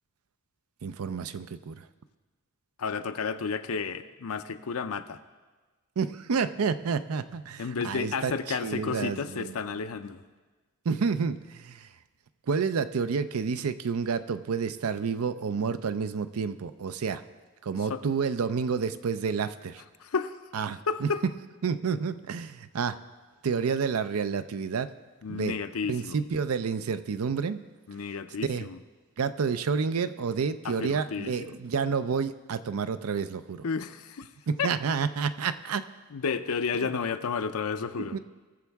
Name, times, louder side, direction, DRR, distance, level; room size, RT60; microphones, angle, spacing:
voice 1, 0.8-1.9 6.0-9.6 10.8-11.9 12.5-17.2 17.6-19.8 20.5-21.1 21.6-23.0 23.4-24.9 25.3-25.6 25.9-27.6 28.4-28.7 29.2-33.6 34.5-35.8 38.1-38.2, right 5 dB, 90° right, 12 dB, 0.5 m, -29 dB
voice 2, 2.8-5.2 7.6-10.2 17.9-18.0 20.0-20.3 20.9-21.2 25.2-26.2 27.9-28.8 30.6-31.5 33.6-34.3 34.6-34.7 36.1-38.2, left 5 dB, 90° left, 10 dB, 0.6 m, -32 dB
19.0 x 7.1 x 3.5 m, 1.3 s
head